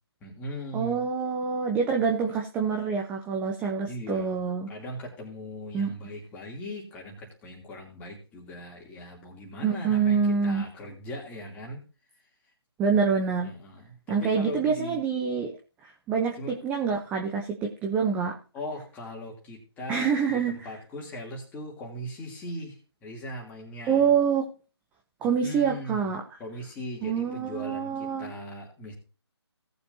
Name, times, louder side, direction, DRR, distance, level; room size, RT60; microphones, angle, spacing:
voice 1, 0.2-1.0 3.8-4.4 4.7-11.8 13.4-15.0 16.4-16.6 18.5-24.1 25.2-26.1 26.4-28.9, left 1 dB, 10° left, -2 dB, 2.9 m, -39 dB
voice 2, 0.7-4.7 5.7-5.9 9.6-10.6 12.8-13.5 14.1-15.5 15.8-18.4 19.9-20.7 23.9-24.5 25.2-26.2 27.0-28.3, right 6 dB, 10° right, 2 dB, 0.8 m, -26 dB
18.0 x 7.0 x 2.8 m, 0.34 s
figure-of-eight pair, 150°, 14 cm